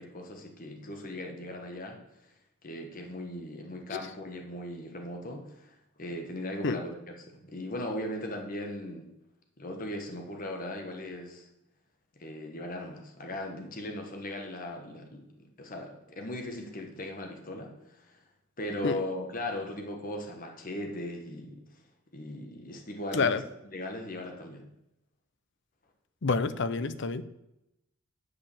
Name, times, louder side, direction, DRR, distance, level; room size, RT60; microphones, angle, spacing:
voice 1, 0.0-2.3 2.6-9.1 9.6-11.5 12.2-18.2 18.6-21.8 22.1-23.4 23.7-24.7, left 1 dB, 45° left, 3 dB, 1.3 m, -38 dB
voice 2, 26.2-27.2, left 4 dB, 60° left, 13 dB, 0.6 m, -27 dB
9.7 x 5.5 x 7.0 m, 0.87 s
head